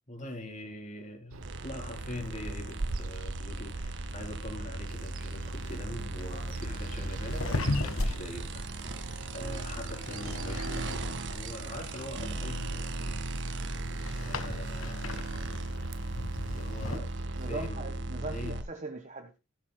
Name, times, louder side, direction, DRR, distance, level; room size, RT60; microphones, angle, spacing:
voice 1, 0.1-13.2 14.1-15.5 16.5-17.1 17.5-18.0 18.3-18.6, left 1 dB, 35° left, 4.2 m, -43 dB
Bird vocalization bird call bird song, 1.3-17.7, right 3 dB, 75° right, 0.7 m, -43 dB
sound 1, 1.4-18.6, right 2 dB, 60° right, 1.7 m, -37 dB
sound 2, 6.2-17.0, left 2 dB, 90° left, 1.5 m, -38 dB
voice 2, 17.3-19.4, right 2 dB, 35° right, 1.3 m, -40 dB
14.5 x 12.0 x 2.2 m
head